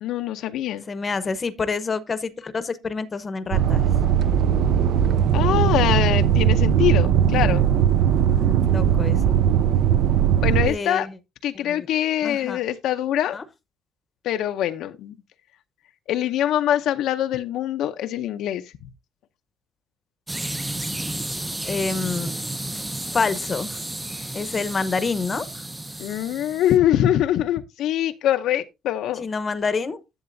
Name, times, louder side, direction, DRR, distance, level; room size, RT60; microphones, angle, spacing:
voice 1, 0.0-0.8 5.3-7.6 10.4-11.1 11.4-13.4 14.2-15.1 16.1-18.7 26.0-29.3, left 11 dB, 65° left, 0.6 m, -23 dB
voice 2, 0.9-3.9 7.1-7.5 8.1-9.4 10.6-11.1 11.5-11.9 12.2-12.6 13.3-13.4 21.6-22.3 22.7-22.8 23.1-23.8 24.3-25.5 29.2-30.0, left 4 dB, 25° left, 0.8 m, -28 dB
sound 1, 3.5-10.7, right 9 dB, 60° right, 0.5 m, -19 dB
sound 2, 20.3-26.8, right 1 dB, 10° right, 0.5 m, -32 dB
11.0 x 7.8 x 2.6 m
cardioid pair, 155°, 0 cm